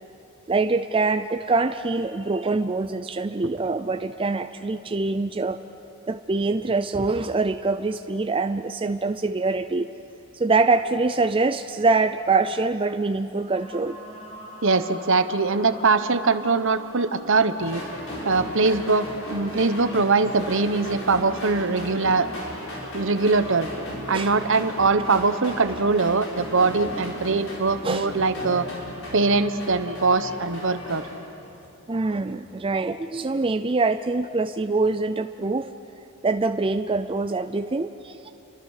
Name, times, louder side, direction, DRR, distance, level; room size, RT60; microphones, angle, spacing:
voice 1, 0.5-5.6 6.1-9.9 10.3-14.0 24.1-24.3 27.8-28.1 31.9-35.7 36.2-38.3, right 3 dB, 25° right, 9 dB, 0.5 m, -24 dB
sound 1, 13.5-24.7, equal, 30° left, 4.5 m, -45 dB
voice 2, 14.6-17.8 18.2-22.3 22.9-23.7 24.1-28.7 29.1-31.0, right 4 dB, 60° right, 11 dB, 1.0 m, -22 dB
sound 2, 17.6-31.1, left 1 dB, 65° left, 6.6 m, -36 dB
30.0 x 24.0 x 6.5 m, 2.9 s
head